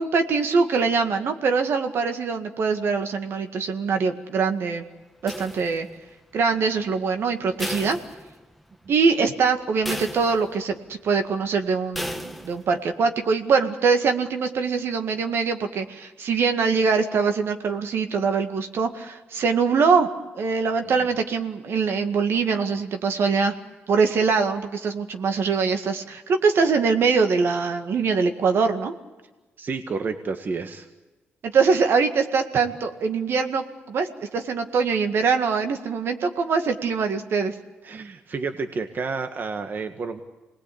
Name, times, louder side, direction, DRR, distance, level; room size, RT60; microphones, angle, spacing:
voice 1, 0.0-4.8 5.2-5.9 6.3-8.0 8.9-10.8 11.0-20.1 20.3-23.5 23.9-28.9 31.4-34.1 34.3-37.5, right 5 dB, 65° right, 6 dB, 1.9 m, -23 dB
sound 1, 5.3-6.1 7.6-8.7 9.1-9.2 9.9-10.7 11.9-12.7, left 1 dB, ahead, 1.4 m, -34 dB
voice 2, 29.6-30.9 37.8-40.2, right 4 dB, 50° right, 7 dB, 1.6 m, -30 dB
26.0 x 20.0 x 8.7 m, 1.2 s
cardioid pair, 75°, 4 cm